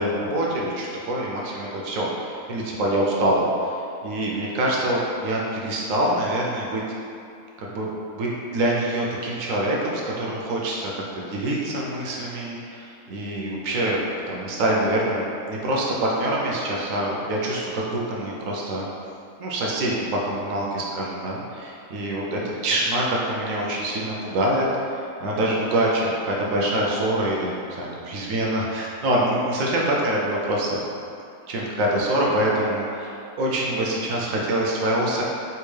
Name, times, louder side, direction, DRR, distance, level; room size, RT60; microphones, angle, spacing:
voice 1, 0.0-3.8 4.0-6.8 7.6-7.9 8.1-14.0 14.3-18.9 19.4-24.7 24.9-30.8 31.5-35.2, right 1 dB, 70° right, -3 dB, 0.9 m, -25 dB
3.4 x 2.7 x 3.2 m, 2.6 s
omnidirectional pair, 1.6 m